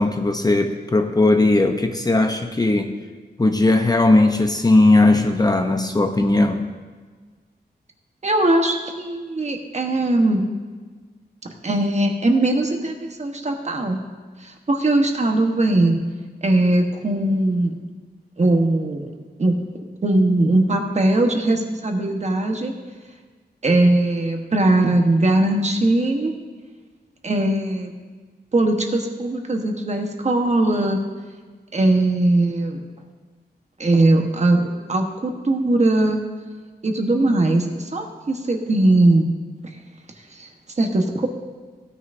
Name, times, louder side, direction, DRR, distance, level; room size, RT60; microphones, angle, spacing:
voice 1, 0.0-2.9 3.4-6.6, left 2 dB, 20° left, 5 dB, 0.6 m, -17 dB
voice 2, 8.2-10.4 11.6-14.0 14.4-16.0 16.4-17.7 18.4-19.1 19.4-19.6 20.0-22.7 23.6-26.3 27.2-27.9 28.5-31.0 31.7-32.8 33.8-34.6 34.9-36.2 36.8-39.3 40.4-40.5 40.8-41.3, right 2 dB, 40° right, 3 dB, 1.1 m, -20 dB
16.5 x 9.5 x 2.6 m, 1.4 s
wide cardioid pair, 125°, 18 cm